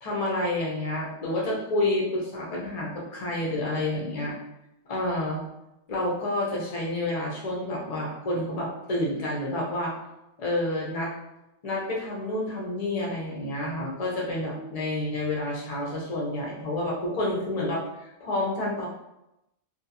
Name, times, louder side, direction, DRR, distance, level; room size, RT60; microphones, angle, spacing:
voice 1, 0.0-4.4 4.9-5.4 5.9-9.9 10.4-11.1 11.6-18.9, left 1 dB, 45° left, -3 dB, 0.5 m, -29 dB
2.7 x 2.3 x 2.7 m, 0.89 s
omnidirectional pair, 1.5 m